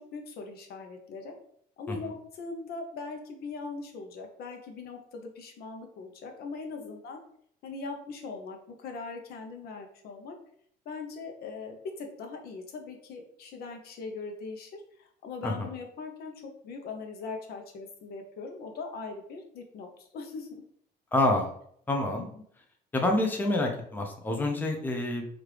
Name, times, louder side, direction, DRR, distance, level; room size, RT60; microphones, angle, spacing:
voice 1, 0.1-1.3 1.8-7.2 7.6-10.4 10.9-20.6 22.2-22.4, left 4 dB, 70° left, 4 dB, 0.7 m, -40 dB
voice 2, 21.1-21.5 21.9-22.3 22.9-25.3, left 2 dB, 10° left, 2 dB, 0.5 m, -27 dB
3.0 x 2.5 x 3.2 m, 0.65 s
cardioid pair, 110°, 17 cm